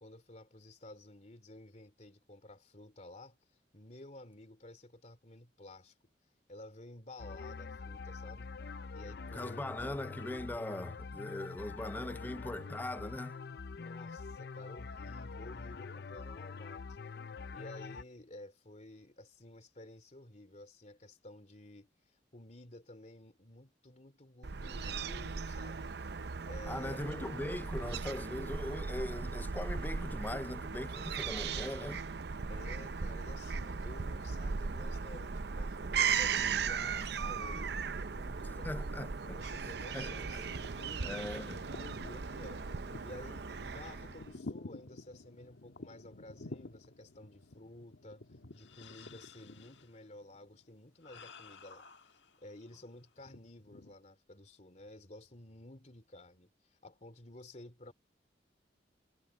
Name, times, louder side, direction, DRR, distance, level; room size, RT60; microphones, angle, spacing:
voice 1, 0.0-3.4 3.7-5.9 6.5-8.5 8.9-9.9 13.8-17.0 17.5-21.9 22.3-26.0 26.4-27.0 32.5-38.7 39.2-48.2 48.5-57.9, left 1 dB, 40° left, 3.0 m, -53 dB
sound 1, 7.2-18.0, left 4 dB, 60° left, 0.5 m, -45 dB
voice 2, 9.3-13.4 26.7-32.0 38.6-39.4 39.9-40.5 41.0-41.6, left 1 dB, 10° left, 0.4 m, -40 dB
Fowl / Gull seagull, 24.4-44.3, right 5 dB, 65° right, 0.6 m, -37 dB
sound 2, 40.3-52.7 53.2-54.0, left 3 dB, 90° left, 1.4 m, -51 dB
head